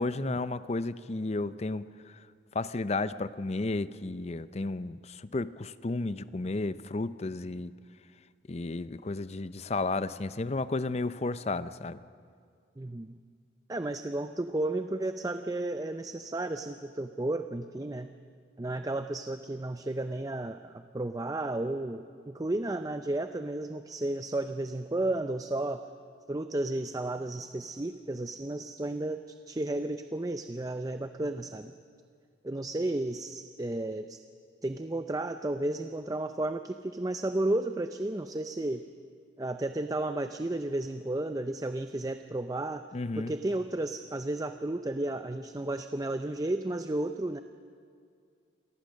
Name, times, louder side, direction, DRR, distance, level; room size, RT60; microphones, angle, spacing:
voice 1, 0.0-2.2 2.5-7.7 8.5-12.0 42.9-43.4, left 3 dB, 35° left, 0.5 m, -33 dB
voice 2, 12.8-13.2 13.7-18.1 18.6-25.8 26.3-31.7 32.4-34.2 34.6-38.8 39.4-42.8 43.2-47.4, right 2 dB, 20° right, 0.5 m, -33 dB
28.0 x 19.0 x 6.4 m
head